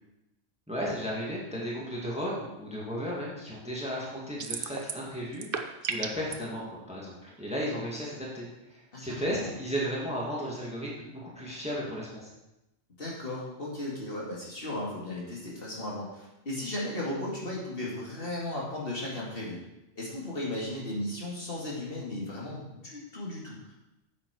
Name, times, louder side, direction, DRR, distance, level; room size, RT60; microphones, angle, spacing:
voice 1, 0.7-12.3, equal, 5° right, -4 dB, 2.1 m, -35 dB
sound 1, 4.4-5.1 5.3-6.4, right 6 dB, 50° right, 0.8 m, -33 dB
voice 2, 8.9-9.5 13.0-19.6 20.0-23.7, left 1 dB, 50° left, -4 dB, 2.4 m, -36 dB
8.8 x 7.4 x 4.9 m, 0.94 s
omnidirectional pair, 1.3 m